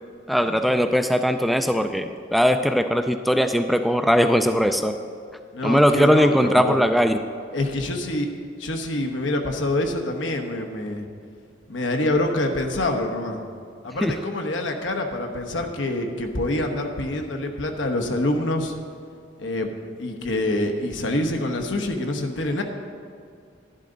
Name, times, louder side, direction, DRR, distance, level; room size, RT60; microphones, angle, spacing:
voice 1, 0.3-4.9 5.6-7.2 14.0-14.1, equal, ahead, 7 dB, 0.3 m, -20 dB
voice 2, 5.6-6.8 7.5-8.3 8.6-11.0 11.7-13.4 13.9-18.7 19.4-19.7 20.0-22.6, left 1 dB, 85° left, 4 dB, 1.1 m, -26 dB
11.5 x 11.0 x 3.9 m, 2.3 s
head